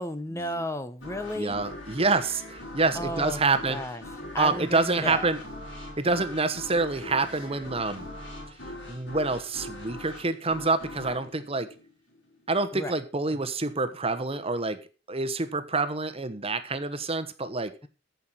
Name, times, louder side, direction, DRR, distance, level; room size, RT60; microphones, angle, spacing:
voice 1, 0.0-1.6 2.9-4.0 4.3-5.3 12.7-12.9, left 1 dB, 15° left, 10 dB, 0.8 m, -33 dB
sound 1, 1.0-12.5, left 1 dB, 65° left, 5.2 m, -42 dB
voice 2, 1.3-3.8 4.4-5.4 6.0-8.1 8.9-11.7 12.5-14.8 15.1-17.7, right 3 dB, 30° right, 10 dB, 1.1 m, -27 dB
14.5 x 5.9 x 6.2 m, 0.34 s
head